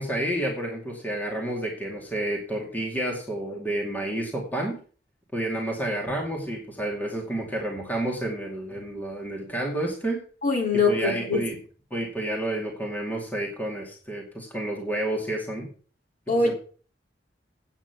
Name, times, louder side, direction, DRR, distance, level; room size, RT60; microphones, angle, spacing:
voice 1, 0.0-4.8 5.3-10.2 10.9-11.5 11.9-15.7 16.4-16.5, right 1 dB, 10° left, -1 dB, 2.4 m, -30 dB
voice 2, 10.4-11.4 16.3-16.5, left 3 dB, 45° left, 0 dB, 3.5 m, -23 dB
9.0 x 8.9 x 5.9 m, 0.40 s
head